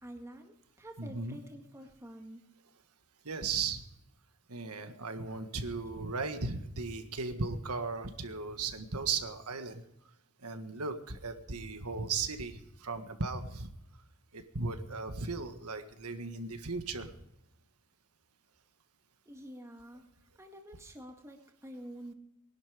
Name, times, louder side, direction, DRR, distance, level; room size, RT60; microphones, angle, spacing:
voice 1, 0.0-2.4 19.3-20.0 20.4-22.1, equal, 15° right, 3 dB, 1.9 m, -48 dB
voice 2, 1.0-1.4 3.2-3.8 4.5-9.8 10.4-13.7 14.3-17.1, right 4 dB, 85° right, 8 dB, 1.6 m, -36 dB
20.5 x 11.5 x 5.0 m, 0.83 s
head